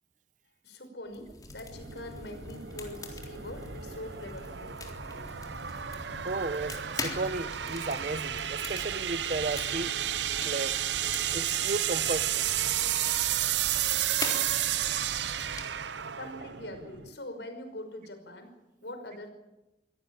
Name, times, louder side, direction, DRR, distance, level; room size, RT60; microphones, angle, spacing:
voice 1, 0.6-4.7 5.1-5.2 16.2-18.5 18.8-19.3, left 1 dB, 80° left, 7 dB, 5.6 m, -43 dB
sound 1, 1.1-15.6, left 2 dB, 20° left, 3.7 m, -43 dB
sound 2, 1.7-17.2, right 11 dB, 80° right, 0.8 m, -32 dB
voice 2, 6.2-10.0 10.4-10.8 11.3-12.4, right 3 dB, 45° right, 15 dB, 0.9 m, -34 dB
24.5 x 17.0 x 8.8 m, 0.96 s
head